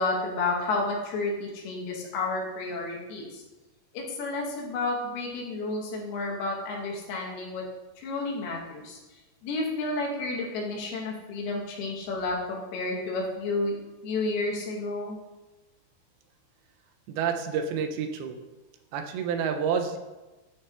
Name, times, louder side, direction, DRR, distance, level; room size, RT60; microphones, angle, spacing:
voice 1, 0.0-3.4 3.9-7.6 8.0-9.0 9.4-13.7 14.0-15.2, left 3 dB, 85° left, -1 dB, 3.1 m, -31 dB
voice 2, 17.1-18.4 18.9-20.0, right 6 dB, 85° right, 6 dB, 2.4 m, -29 dB
9.7 x 5.7 x 2.3 m, 1.1 s
omnidirectional pair, 4.4 m